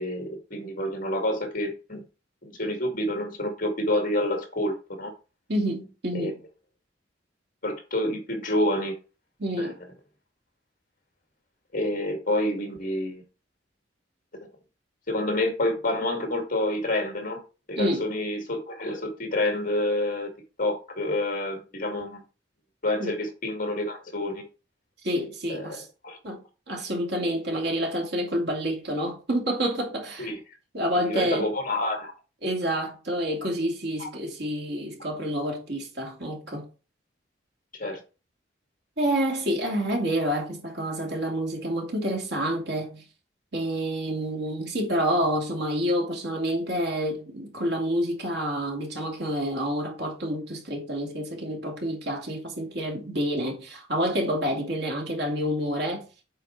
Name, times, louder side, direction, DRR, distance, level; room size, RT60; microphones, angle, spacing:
voice 1, 0.0-2.0 2.4-5.1 6.1-6.3 7.6-9.0 9.6-9.7 11.7-13.2 14.3-14.5 15.1-17.4 17.7-20.3 20.6-22.2 22.8-24.5 25.5-25.8 26.0-26.2 30.2-30.4 31.1-32.1 34.0-34.1 37.8-38.0, left 1 dB, 45° left, 2.1 m, -28 dB
voice 2, 5.5-6.4 9.4-9.8 17.7-18.1 23.0-23.1 25.0-25.9 26.2-30.3 30.7-31.5 32.4-36.7 39.0-43.0 43.5-56.1, equal, 65° right, 2.6 m, -28 dB
7.9 x 4.7 x 4.5 m
head